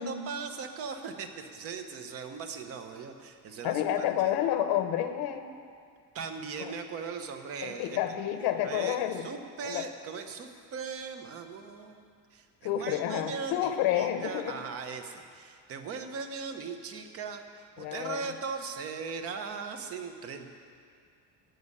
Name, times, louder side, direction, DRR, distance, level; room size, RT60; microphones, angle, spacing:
voice 1, 0.0-4.4 6.1-8.0 8.6-20.5, right 5 dB, 40° right, 7 dB, 0.9 m, -39 dB
voice 2, 3.6-5.5 6.6-6.7 7.6-9.3 9.6-9.8 12.6-14.5 17.8-18.3, left 11 dB, 80° left, 8 dB, 1.0 m, -29 dB
15.5 x 5.4 x 9.8 m, 2.2 s
cardioid pair, 180°, 38 cm